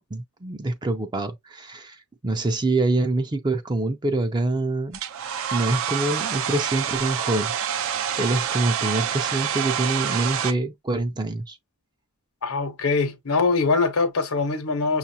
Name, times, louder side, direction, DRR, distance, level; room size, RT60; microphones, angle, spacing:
voice 1, 0.0-5.0 5.5-7.5 8.1-11.6, right 2 dB, 20° right, 0.4 m, -25 dB
Domestic sounds home sounds, 4.9-10.5, right 8 dB, 70° right, 0.5 m, -27 dB
voice 2, 12.4-15.0, left 4 dB, 85° left, 0.9 m, -23 dB
6.1 x 2.4 x 2.7 m
head